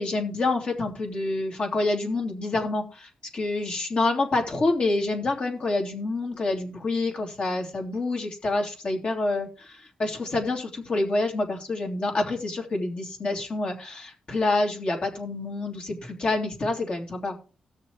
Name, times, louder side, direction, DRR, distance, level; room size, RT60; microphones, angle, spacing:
voice 1, 0.0-17.4, left 2 dB, 50° left, 2 dB, 3.0 m, -27 dB
18.5 x 6.6 x 3.2 m, 0.35 s
cardioid pair, 95°, 2 cm